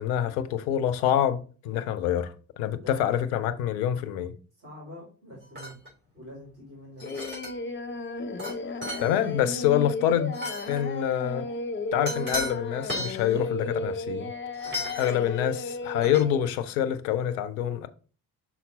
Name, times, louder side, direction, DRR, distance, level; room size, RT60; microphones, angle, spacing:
voice 1, 0.0-4.4 9.0-10.3 10.7-11.5 11.9-14.3 15.0-17.9, left 10 dB, 65° left, 0.7 m, -26 dB
voice 2, 4.6-5.8 6.1-7.2 14.6-15.0, equal, 80° right, 2.7 m, -45 dB
sound 1, 5.6-5.9 7.0-7.6 8.4-8.5 8.8-9.1 10.3-10.8 12.1-12.5 12.8-13.2 14.5-15.2 16.0-16.2, left 1 dB, 20° right, 3.7 m, -34 dB
Singing, 7.0-16.4, left 2 dB, 25° left, 0.7 m, -34 dB
5.8 x 4.3 x 4.0 m
figure-of-eight pair, 45°, 49 cm